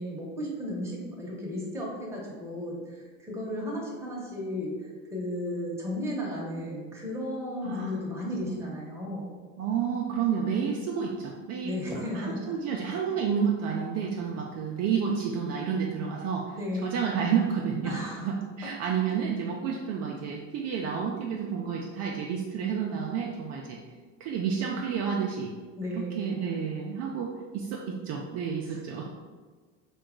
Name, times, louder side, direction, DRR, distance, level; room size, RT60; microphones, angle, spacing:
voice 1, 0.0-9.3 11.6-12.5 16.5-16.9 17.8-18.3 25.8-26.2 28.7-28.8, left 1 dB, 10° right, -4 dB, 0.8 m, -34 dB
voice 2, 9.6-11.7 12.1-16.5 16.8-23.8 24.2-25.5 26.0-29.1, right 7 dB, 45° right, -1 dB, 0.4 m, -30 dB
2.9 x 2.3 x 3.6 m, 1.4 s
supercardioid pair, 115°, 35 cm